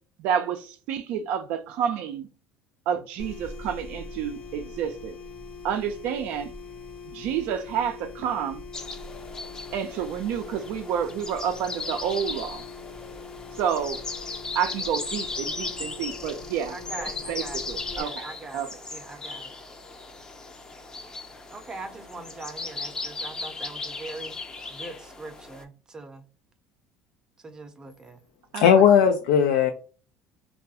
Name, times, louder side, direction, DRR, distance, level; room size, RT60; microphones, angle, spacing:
voice 1, 0.2-2.3 2.9-5.1 5.6-6.5 7.1-8.6 9.7-12.6 13.5-14.0 14.5-18.3 18.5-18.7 28.5-28.9, right 8 dB, 70° right, 0.3 m, -29 dB
sound 1, 3.2-18.0, left 4 dB, 60° left, 0.8 m, -42 dB
sound 2, 8.7-25.6, left 3 dB, 25° left, 0.5 m, -37 dB
voice 2, 16.7-17.6 17.9-19.5 21.5-24.3 24.7-26.2 27.4-28.2, right 3 dB, 25° right, 0.6 m, -41 dB
voice 3, 28.5-29.7, left 8 dB, 85° left, 0.3 m, -17 dB
2.3 x 2.2 x 2.7 m
supercardioid pair, 95°, 3 cm